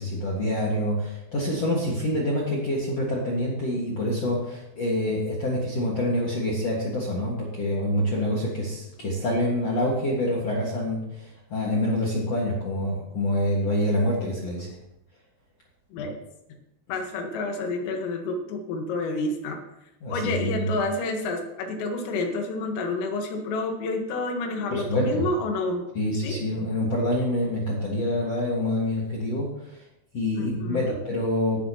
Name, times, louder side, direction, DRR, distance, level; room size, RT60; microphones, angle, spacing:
voice 1, 0.0-14.8 20.0-20.7 24.7-25.2 25.9-29.8 30.1-31.6, left 1 dB, 50° left, -4 dB, 1.9 m, -26 dB
voice 2, 16.9-19.6 20.1-25.9 26.2-26.4 30.4-31.0, left 2 dB, 85° left, 3 dB, 4.2 m, -29 dB
17.0 x 11.0 x 3.0 m, 0.86 s
omnidirectional pair, 5.8 m